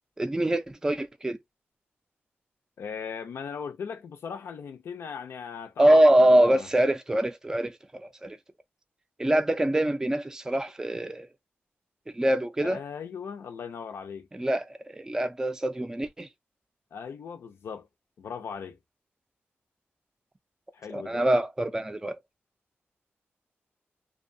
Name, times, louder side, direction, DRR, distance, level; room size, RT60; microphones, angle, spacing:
voice 1, 0.2-1.4 5.8-8.4 9.2-11.3 12.1-12.8 14.3-16.3 20.9-22.2, right 1 dB, 15° right, 0.3 m, -24 dB
voice 2, 2.8-6.7 12.6-14.3 16.9-17.9 18.2-18.8 20.7-21.2, left 6 dB, 85° left, 0.4 m, -38 dB
2.7 x 2.1 x 2.5 m
wide cardioid pair, 115°, 4 cm